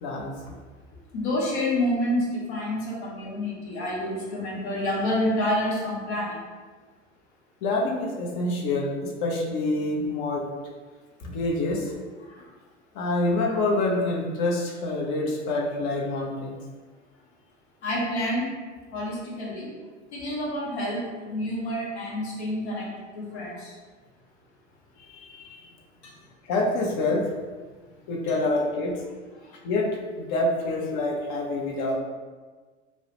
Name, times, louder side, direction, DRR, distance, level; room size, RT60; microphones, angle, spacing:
voice 1, 0.0-0.3 7.6-10.4 11.2-11.9 12.9-16.5 25.0-25.7 26.5-27.3 28.1-28.9 29.6-29.9 30.2-31.9, left 2 dB, 40° left, -1 dB, 0.5 m, -26 dB
voice 2, 1.1-6.4 17.8-18.5 18.9-19.7 20.1-23.7, left 1 dB, 60° left, -4 dB, 0.9 m, -28 dB
2.3 x 2.0 x 2.9 m, 1.4 s
figure-of-eight pair, 80°, 37 cm